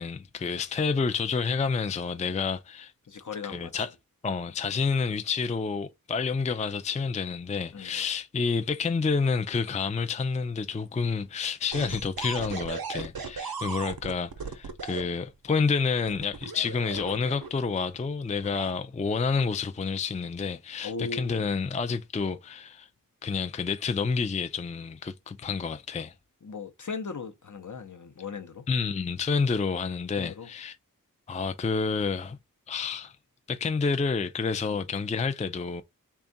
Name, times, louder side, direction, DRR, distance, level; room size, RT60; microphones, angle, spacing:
voice 1, 0.0-2.9 3.4-3.9 4.2-22.9 23.2-26.1 28.7-30.8 31.3-32.4 32.7-33.2 33.5-35.8, left 5 dB, 20° left, 0.4 m, -29 dB
voice 2, 3.1-3.8 7.7-8.0 20.8-21.5 26.4-28.7 30.2-30.5, left 4 dB, 60° left, 0.7 m, -38 dB
sound 1, 11.7-15.0 16.1-17.7 18.4-18.7, right 5 dB, 85° right, 0.7 m, -36 dB
3.5 x 2.4 x 3.9 m
wide cardioid pair, 45°, 35 cm